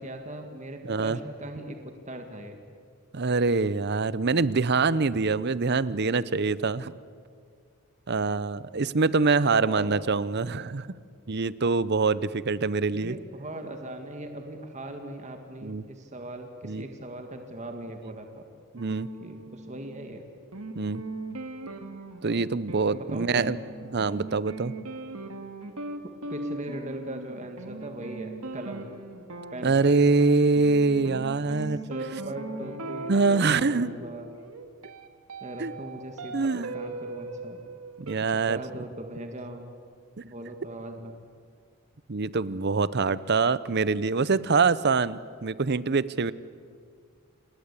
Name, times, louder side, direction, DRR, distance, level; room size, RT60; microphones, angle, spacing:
voice 1, 0.0-2.6 9.7-10.0 12.9-18.5 19.2-20.3 22.9-23.6 26.3-28.9 29.5-29.8 31.9-34.3 35.4-37.7 38.2-39.7 40.2-41.3, right 1 dB, 35° right, 5 dB, 1.9 m, -39 dB
voice 2, 0.8-1.2 3.1-6.9 8.1-10.9 11.3-13.2 15.6-15.8 16.6-16.8 18.7-19.1 20.8-21.0 22.2-23.6 23.9-24.7 29.6-31.8 33.1-33.9 35.6-35.7 36.3-36.7 38.0-38.6 40.2-40.3 42.1-46.3, right 4 dB, 50° right, 18 dB, 0.7 m, -24 dB
sound 1, 18.8-20.2 20.5-38.2, right 2 dB, 85° right, 2.0 m, -39 dB
28.0 x 20.5 x 8.4 m, 2.1 s
head